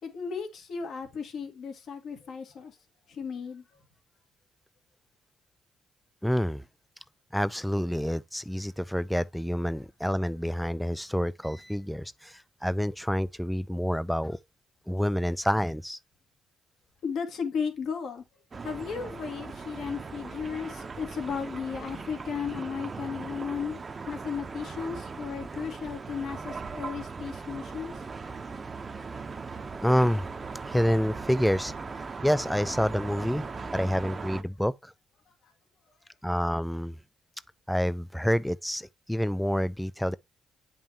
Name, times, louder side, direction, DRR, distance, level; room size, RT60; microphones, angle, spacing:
voice 1, 0.0-2.8 3.1-3.6 17.0-18.2 18.6-23.8 24.1-28.0, left 6 dB, 65° left, 2.2 m, -35 dB
voice 2, 6.2-6.6 7.3-14.4 14.9-16.0 29.8-30.3 30.7-31.7 32.2-33.4 33.7-34.9 36.2-37.0 37.7-40.2, equal, ahead, 0.3 m, -28 dB
sound 1, 18.5-34.4, right 4 dB, 35° right, 0.9 m, -39 dB
8.8 x 5.5 x 3.0 m
cardioid pair, 90°, 0 cm